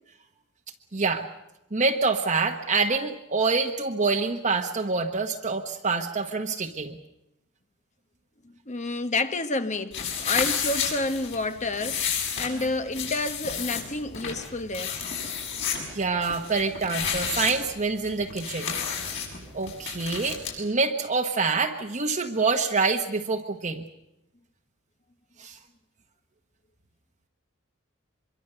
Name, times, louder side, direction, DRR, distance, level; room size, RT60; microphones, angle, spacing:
voice 1, 0.9-1.3 1.7-7.0 15.9-18.7 19.5-23.8 25.4-25.6, right 4 dB, 35° right, 1.2 m, -26 dB
voice 2, 8.4-15.0, left 2 dB, 35° left, 1.1 m, -29 dB
sound 1, 9.9-20.5, left 7 dB, 60° left, 6.3 m, -32 dB
24.5 x 23.0 x 6.8 m
head